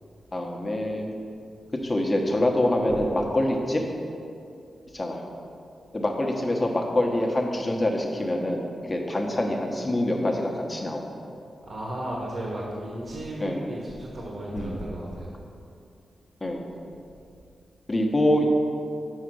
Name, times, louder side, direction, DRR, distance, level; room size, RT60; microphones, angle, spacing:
voice 1, 0.3-1.1 1.8-3.0 3.3-3.8 4.9-5.3 5.9-11.0 13.4-13.6 14.5-14.9 16.4-16.6 17.9-18.5, left 1 dB, 25° left, 1 dB, 1.0 m, -25 dB
voice 2, 11.7-15.3, right 1 dB, 50° right, -4 dB, 1.2 m, -34 dB
6.5 x 4.9 x 6.4 m, 2.5 s
wide cardioid pair, 100°, 0 cm